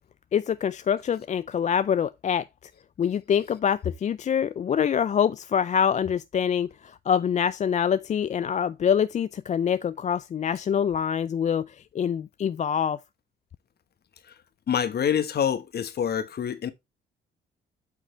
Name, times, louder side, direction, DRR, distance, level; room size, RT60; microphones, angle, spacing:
voice 1, 0.3-2.5 3.0-13.0, left 8 dB, 35° left, 0.4 m, -25 dB
voice 2, 14.7-16.7, left 8 dB, 55° left, 1.2 m, -26 dB
8.3 x 5.9 x 3.2 m
cardioid pair, 90°, 20 cm